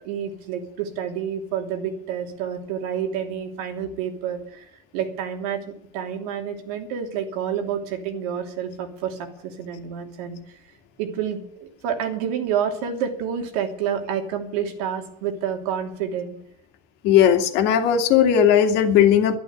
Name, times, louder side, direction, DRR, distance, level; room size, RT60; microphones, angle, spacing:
voice 1, 0.0-10.6 11.0-16.4, right 8 dB, 90° right, 4 dB, 3.0 m, -29 dB
voice 2, 17.0-19.4, left 9 dB, 65° left, 6 dB, 2.2 m, -17 dB
11.5 x 11.5 x 8.1 m, 0.66 s
cardioid pair, 135°, 19 cm